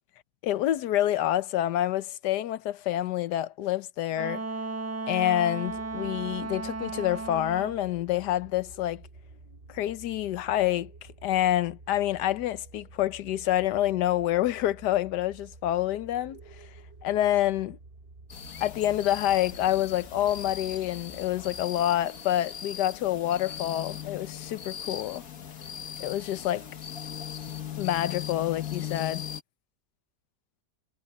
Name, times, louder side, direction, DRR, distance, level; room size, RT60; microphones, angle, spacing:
voice 1, 0.4-4.4 5.1-9.0 9.7-10.9 11.2-16.4 17.0-17.8 18.6-25.2 26.0-26.7 27.8-29.3, left 13 dB, 85° left, 1.3 m, -27 dB
Wind instrument woodwind instrument, 4.1-7.8, right 3 dB, 20° right, 0.4 m, -35 dB
sound 1, 5.7-21.7, right 3 dB, 35° right, 1.5 m, -50 dB
sound 2, 18.3-29.4, left 9 dB, 60° left, 1.8 m, -39 dB
omnidirectional pair, 1.7 m